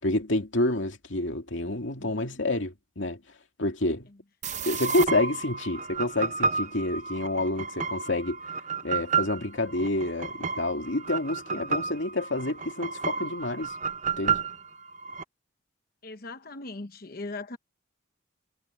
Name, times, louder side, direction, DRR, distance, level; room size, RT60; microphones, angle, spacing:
voice 1, 0.0-3.2 3.6-4.1 4.7-8.4 8.8-13.7 14.2-14.4, left 1 dB, 65° left, 2.6 m, -28 dB
voice 2, 2.0-2.3 16.0-17.6, left 2 dB, 45° left, 1.0 m, -39 dB
sound 1, 4.4-15.2, right 5 dB, 35° right, 0.7 m, -31 dB
head